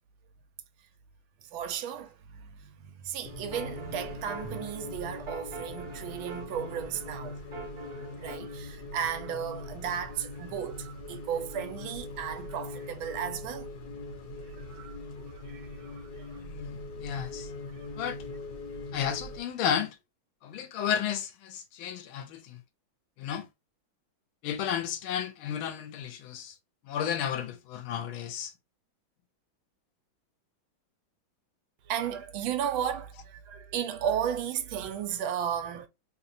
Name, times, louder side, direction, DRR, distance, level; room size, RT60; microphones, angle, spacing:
voice 1, 1.4-7.4 7.9-13.7 14.4-15.0 15.3-16.4 17.1-17.2 17.7-17.9 31.8-35.9, right 9 dB, 80° right, 1.4 m, -35 dB
sound 1, 3.2-19.4, left 2 dB, 55° left, 1.4 m, -42 dB
sound 2, 3.3-8.4, right 4 dB, 40° right, 1.2 m, -45 dB
voice 2, 16.4-17.5 18.0-18.2 18.9-20.0 20.4-22.6 23.2-23.5 24.4-26.5 26.8-28.5, left 8 dB, 85° left, 1.5 m, -33 dB
3.5 x 2.9 x 2.6 m
omnidirectional pair, 2.2 m